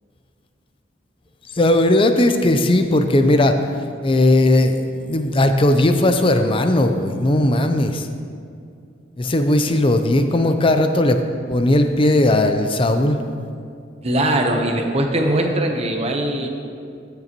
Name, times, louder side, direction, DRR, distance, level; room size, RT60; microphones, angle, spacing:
voice 1, 1.5-3.7 4.0-8.1 9.2-11.2 11.5-13.2, left 1 dB, 30° left, 7 dB, 0.5 m, -17 dB
voice 2, 14.0-16.5, right 1 dB, 35° right, 3 dB, 0.9 m, -20 dB
14.5 x 6.8 x 3.0 m, 2.4 s
head